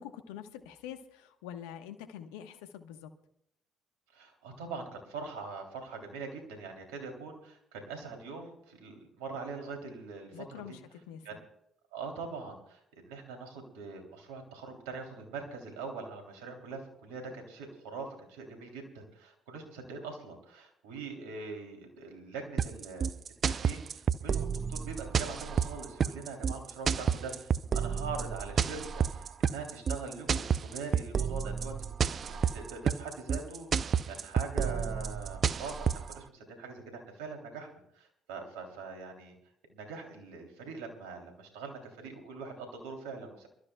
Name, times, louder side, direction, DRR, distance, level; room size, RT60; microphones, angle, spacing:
voice 1, 0.0-3.1 10.3-11.4, left 9 dB, 80° left, 8 dB, 1.3 m, -45 dB
voice 2, 4.1-10.8 11.2-11.4 11.9-23.1 23.4-31.7 32.0-39.3 39.7-43.5, right 4 dB, 80° right, 3 dB, 3.2 m, -43 dB
sound 1, 22.6-36.1, right 7 dB, 50° right, 0.6 m, -30 dB
28.0 x 13.5 x 2.4 m, 0.73 s
hypercardioid pair, 50°, 0 cm